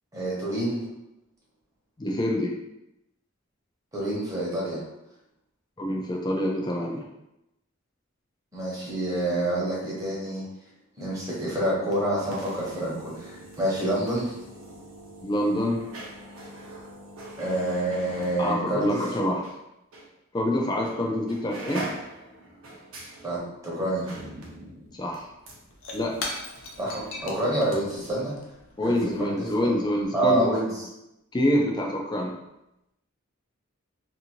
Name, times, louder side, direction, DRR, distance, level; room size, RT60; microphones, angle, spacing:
voice 1, 0.1-0.8 3.9-4.8 8.5-10.4 11.0-14.3 17.4-19.1 23.2-24.1 26.8-28.3 28.8-29.7 30.1-30.8, right 1 dB, 15° right, -6 dB, 0.9 m, -27 dB
voice 2, 2.0-2.5 5.8-7.1 15.2-15.8 18.4-19.4 20.3-21.9 24.9-25.3 25.9-26.1 28.8-30.5 31.3-32.3, left 1 dB, 20° left, 0 dB, 0.4 m, -26 dB
sound 1, 11.8-19.6 19.9-20.1 20.8-21.0 21.3-27.8 28.0-28.1, right 1 dB, 75° right, 0.7 m, -43 dB
Shatter / Crushing, 24.9-25.0 25.2-30.1, left 2 dB, 70° left, 0.5 m, -40 dB
2.6 x 2.6 x 2.9 m, 0.88 s
head